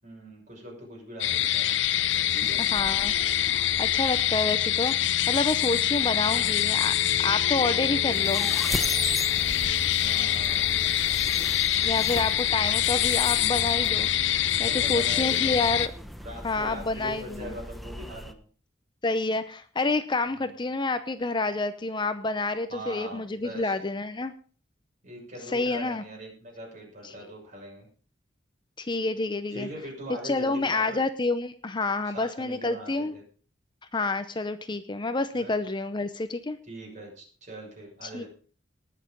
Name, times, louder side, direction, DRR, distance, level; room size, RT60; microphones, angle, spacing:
voice 1, 0.0-1.8 2.1-2.6 6.1-6.6 10.0-10.7 14.6-15.6 16.2-18.5 20.3-20.5 22.7-23.7 25.0-27.9 29.5-31.0 32.0-33.2 35.3-35.5 36.7-38.3, right 1 dB, 45° right, -1 dB, 6.4 m, -41 dB
sound 1, 1.2-15.9, left 11 dB, 75° left, 0.7 m, -25 dB
sound 2, 1.8-18.3, equal, ahead, 0.9 m, -40 dB
voice 2, 2.7-3.1 3.4-6.9 7.2-8.5 11.8-15.9 16.4-17.6 19.0-24.3 25.5-26.0 28.8-29.7 30.2-33.1 33.9-36.6 38.0-38.2, left 3 dB, 25° left, 11 dB, 0.7 m, -28 dB
19.5 x 6.7 x 5.2 m, 0.41 s
head